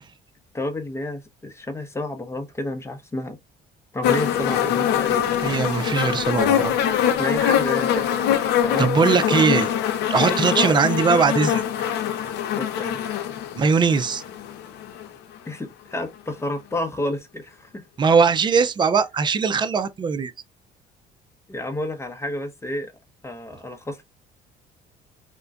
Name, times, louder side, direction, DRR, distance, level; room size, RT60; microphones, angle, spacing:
voice 1, 0.5-3.4 3.9-5.4 7.2-8.1 8.6-9.0 9.3-9.5 10.3-10.8 12.6-13.0 15.5-17.8 21.5-22.9 23.2-24.0, left 1 dB, 15° left, 0.7 m, -30 dB
sound 1, 4.0-15.1 16.1-16.2, left 9 dB, 80° left, 0.6 m, -23 dB
voice 2, 5.4-6.7 8.8-9.7 10.1-11.6 13.6-14.2 18.0-20.3, right 5 dB, 25° right, 0.4 m, -20 dB
3.6 x 2.1 x 2.4 m
cardioid pair, 110°, 17 cm